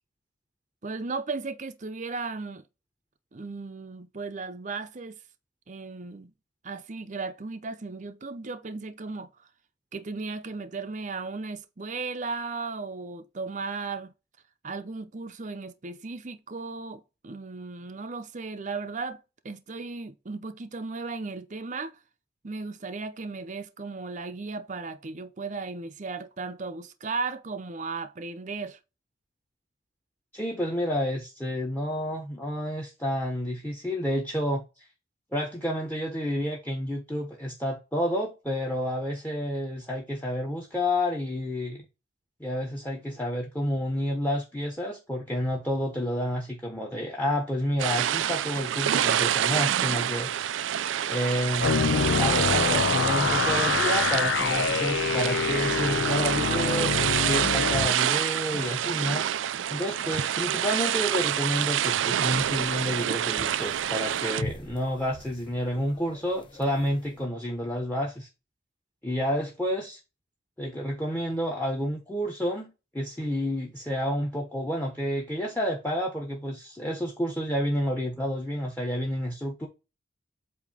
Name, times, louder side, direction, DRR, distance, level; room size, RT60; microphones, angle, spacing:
voice 1, 0.8-2.6 3.3-5.2 5.7-6.3 6.6-9.3 9.9-14.1 14.6-22.0 22.4-28.8, right 4 dB, 40° right, 0.6 m, -36 dB
voice 2, 30.3-34.6 35.3-41.9 42.4-50.3 51.1-59.2 59.7-68.3 69.0-70.0 70.6-79.7, equal, 10° left, 1.1 m, -30 dB
sound 1, 47.8-64.4, right 10 dB, 90° right, 0.4 m, -27 dB
sound 2, 51.6-57.9, left 6 dB, 75° left, 0.4 m, -26 dB
sound 3, 62.2-67.3, left 1 dB, 25° left, 1.0 m, -43 dB
8.2 x 2.8 x 5.1 m
head